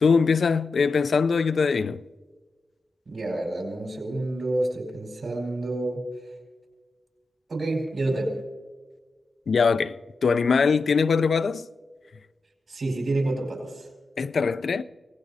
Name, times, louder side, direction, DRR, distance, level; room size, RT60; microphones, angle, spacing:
voice 1, 0.0-2.0 9.5-10.0 10.2-11.7 14.2-14.8, left 5 dB, 75° left, 0.4 m, -22 dB
voice 2, 3.1-6.0 7.5-8.4 12.7-13.9, right 2 dB, 75° right, 4.5 m, -28 dB
24.5 x 18.5 x 2.7 m
wide cardioid pair, 90°, 0 cm